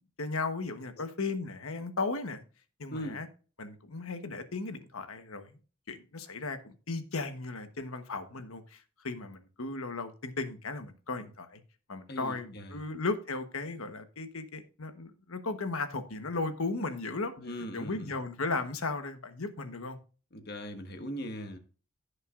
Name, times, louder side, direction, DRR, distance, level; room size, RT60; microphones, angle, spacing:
voice 1, 0.2-2.4 2.8-3.3 3.6-5.6 5.9-11.6 11.9-17.3 17.7-20.0, left 3 dB, 75° left, 1.2 m, -36 dB
voice 2, 12.1-12.8 17.4-18.1 20.3-21.6, equal, 45° left, 1.4 m, -40 dB
15.5 x 6.6 x 2.5 m
head